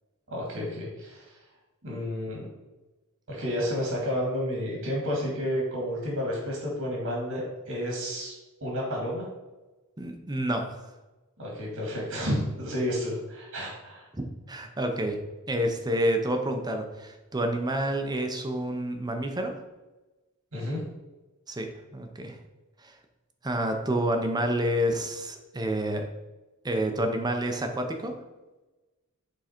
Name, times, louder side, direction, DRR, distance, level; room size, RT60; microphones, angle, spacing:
voice 1, 0.3-1.2 1.8-2.4 3.3-7.4 7.7-8.4 8.6-9.3 11.4-14.0 20.5-20.8, equal, 75° right, -3 dB, 2.1 m, -31 dB
voice 2, 10.0-10.8 14.1-15.2 15.5-19.5 21.5-21.7 21.9-22.4 22.8-22.9 23.4-26.1 26.6-28.1, right 1 dB, 20° right, 5 dB, 0.7 m, -28 dB
7.3 x 3.9 x 4.4 m, 1.1 s
head